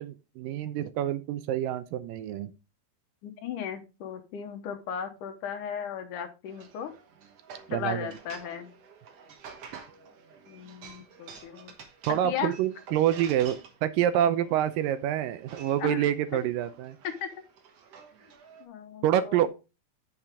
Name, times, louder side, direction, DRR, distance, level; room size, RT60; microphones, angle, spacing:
voice 1, 0.0-2.5 7.7-8.1 9.7-9.8 12.1-17.0 19.0-19.5, right 11 dB, 80° right, 12 dB, 2.2 m, -27 dB
voice 2, 3.2-6.9 7.7-8.7 10.5-11.7 12.2-12.5 15.8-16.1 17.0-17.3 18.6-19.5, left 8 dB, 70° left, 7 dB, 2.4 m, -36 dB
sound 1, 6.5-18.6, right 6 dB, 60° right, 1.8 m, -50 dB
8.6 x 6.8 x 3.5 m, 0.29 s
omnidirectional pair, 4.1 m